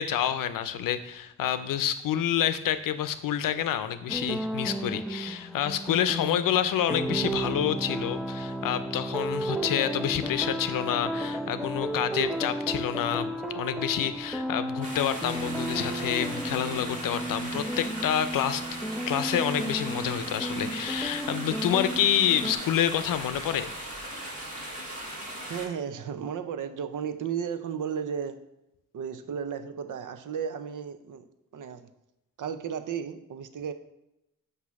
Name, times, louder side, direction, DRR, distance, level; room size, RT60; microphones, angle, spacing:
voice 1, 0.0-13.3 13.5-18.6 19.1-23.7, left 10 dB, 85° left, 11 dB, 0.6 m, -28 dB
sound 1, 4.1-22.5, right 1 dB, ahead, 0.6 m, -33 dB
sound 2, 14.8-25.7, right 1 dB, 25° right, 2.6 m, -38 dB
voice 2, 25.5-28.4 28.9-31.3 31.5-31.9 32.4-33.7, right 7 dB, 70° right, 10 dB, 0.7 m, -34 dB
8.2 x 2.8 x 5.8 m, 0.87 s
cardioid pair, 70°, 32 cm